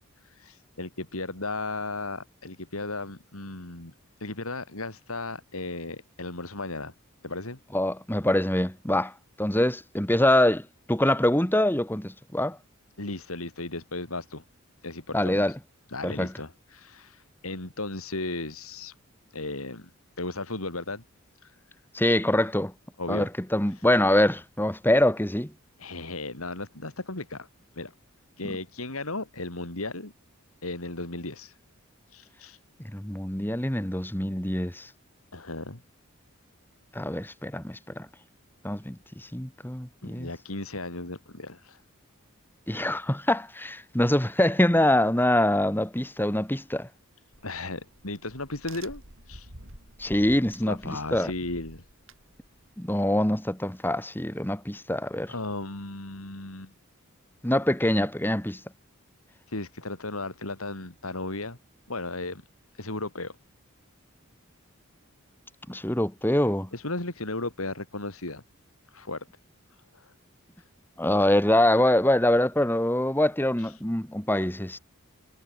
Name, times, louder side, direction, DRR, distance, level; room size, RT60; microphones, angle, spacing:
voice 1, 0.2-3.9 4.2-6.9 7.2-7.6 13.0-14.4 14.8-15.6 15.9-18.9 19.3-19.9 20.2-21.0 21.4-21.6 23.0-23.3 23.7-23.9 25.8-27.5 27.8-27.9 28.4-30.1 30.6-31.6 32.1-32.6 35.3-35.8 40.0-41.8 47.4-49.5 50.6-51.9 55.3-56.7 59.5-61.6 61.9-62.4 62.7-63.4 66.7-68.4 68.9-69.3 69.9-70.1 70.6-70.7 73.6-73.7, left 2 dB, 85° left, 4.1 m, -35 dB
voice 2, 7.7-9.1 9.4-12.6 15.1-15.5 16.0-16.3 21.9-22.7 23.1-25.5 32.9-34.9 36.9-38.1 38.6-40.3 42.7-46.9 50.0-51.3 52.8-55.3 57.4-58.6 65.7-66.7 71.0-74.8, left 1 dB, 10° left, 1.8 m, -24 dB
Crack, 47.3-52.8, right 2 dB, 65° right, 7.3 m, -49 dB
head